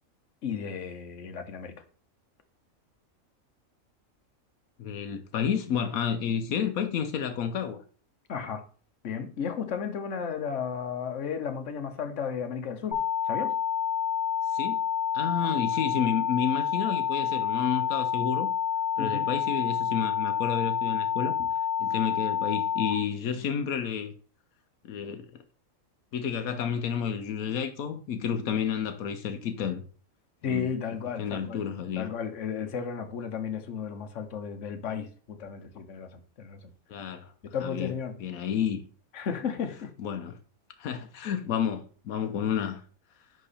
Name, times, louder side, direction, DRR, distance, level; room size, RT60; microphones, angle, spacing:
voice 1, 0.4-1.7 8.3-8.6 9.0-13.0 13.3-13.5 15.4-15.5 19.0-19.3 30.4-31.6 32.0-36.7 37.5-38.2 39.1-39.9, left 7 dB, 60° left, 1.3 m, -34 dB
voice 2, 4.8-7.8 14.5-14.8 15.1-18.5 19.0-21.4 21.8-24.1 24.8-25.3 26.1-29.8 30.4-30.7 31.2-32.1 36.9-37.3 37.6-37.9 38.2-38.8 40.0-40.3 40.8-42.8, left 8 dB, 85° left, 1.2 m, -30 dB
sound 1, 12.9-22.9, left 8 dB, 10° left, 3.9 m, -28 dB
10.5 x 3.9 x 4.2 m
omnidirectional pair, 1.5 m